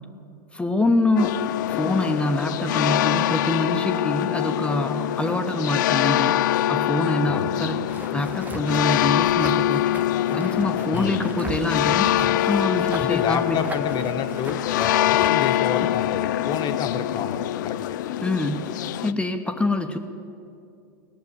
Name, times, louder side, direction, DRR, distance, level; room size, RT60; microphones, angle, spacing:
voice 1, 0.5-6.4 6.7-7.8 8.1-10.0 10.3-13.7 18.2-20.0, left 2 dB, 10° left, 6 dB, 1.0 m, -25 dB
sound 1, 1.2-19.1, left 13 dB, 80° left, 0.4 m, -24 dB
sound 2, 7.9-16.1, right 3 dB, 15° right, 1.0 m, -39 dB
voice 2, 10.9-11.2 13.0-17.8, left 6 dB, 45° left, 8 dB, 1.2 m, -29 dB
17.5 x 6.8 x 9.9 m, 2.6 s
hypercardioid pair, 95°, 10 cm